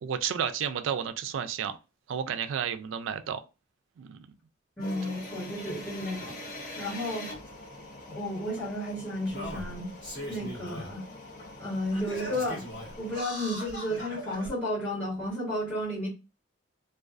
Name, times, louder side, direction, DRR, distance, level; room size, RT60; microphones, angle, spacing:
voice 1, 0.0-1.8 2.1-3.4 4.0-4.2, right 8 dB, 80° right, 0.3 m, -31 dB
sound 1, 4.8-13.2, left 1 dB, 45° left, 0.6 m, -44 dB
voice 2, 4.8-6.4 6.7-7.3 8.1-9.9 10.3-11.1 11.6-12.7 13.0-16.1, left 1 dB, 5° left, 1.3 m, -32 dB
Singing, 7.4-7.5 8.6-8.7 9.3-10.9 11.4-11.5 11.9-14.5 15.3-15.4, equal, 65° left, 1.1 m, -40 dB
2.4 x 2.2 x 2.3 m
head